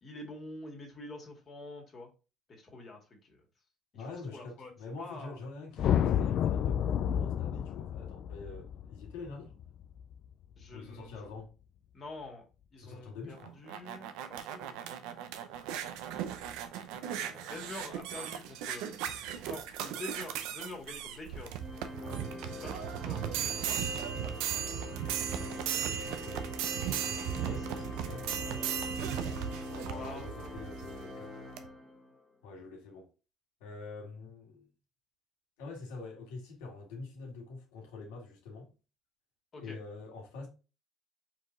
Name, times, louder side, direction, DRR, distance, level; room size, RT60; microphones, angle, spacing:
voice 1, 0.0-2.1 2.5-3.4 3.9-4.0 4.3-4.7 5.0-5.4 10.6-11.2 11.9-12.4 12.7-15.0 17.1-18.9 19.4-21.6 22.4-23.8 27.1-27.9 29.2-29.7 30.0-30.8 39.5-39.8, left 2 dB, 45° left, 2.0 m, -47 dB
voice 2, 3.9-9.5 10.7-11.5 12.8-13.6 16.9-17.9 22.0-22.3 25.4-26.5 26.7-28.8 29.3-31.4 32.4-33.1 33.6-34.7 35.6-38.7 39.6-40.5, left 3 dB, 85° left, 1.8 m, -46 dB
sound 1, 5.8-10.2, left 9 dB, 65° left, 0.3 m, -30 dB
sound 2, 13.3-31.0 31.6-31.7, right 9 dB, 85° right, 0.6 m, -37 dB
Organ, 21.6-32.2, left 1 dB, 10° left, 1.4 m, -43 dB
4.6 x 2.9 x 3.8 m
supercardioid pair, 75°, 0 cm